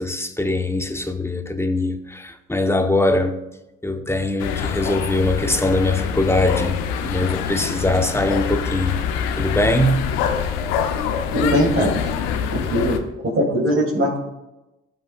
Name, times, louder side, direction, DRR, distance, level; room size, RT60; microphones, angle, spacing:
voice 1, 0.0-3.4 3.8-9.0 9.3-10.0, left 2 dB, 10° left, 1.0 m, -22 dB
sound 1, 4.4-13.0, left 7 dB, 80° left, 0.8 m, -25 dB
voice 2, 11.3-11.9 12.5-13.0 13.2-14.2, equal, 40° right, 2.9 m, -20 dB
15.0 x 5.6 x 2.4 m
hypercardioid pair, 60°, 33 cm